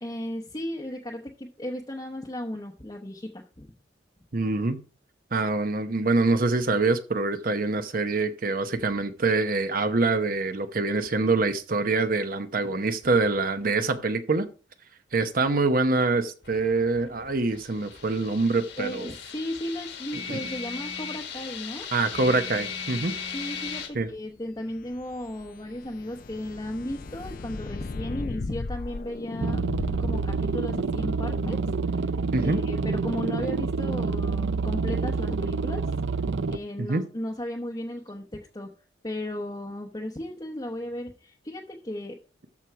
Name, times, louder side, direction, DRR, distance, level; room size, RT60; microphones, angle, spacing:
voice 1, 0.0-3.7 18.8-21.9 23.3-29.6 30.0-31.7 32.4-35.9 36.5-38.7 39.0-42.2, left 1 dB, 20° left, 0 dB, 0.9 m, -35 dB
voice 2, 4.3-4.8 5.3-14.5 15.1-19.1 20.3-20.4 21.9-23.1 23.9-24.1 32.3-32.6 36.8-37.0, right 3 dB, 50° right, 9 dB, 0.8 m, -25 dB
sound 1, 16.4-23.9, left 7 dB, 70° left, 1.8 m, -37 dB
sound 2, 24.6-31.0, left 3 dB, 50° left, 0.5 m, -36 dB
sound 3, 29.4-36.6, right 4 dB, 70° right, 0.5 m, -27 dB
13.0 x 4.6 x 4.7 m, 0.37 s
head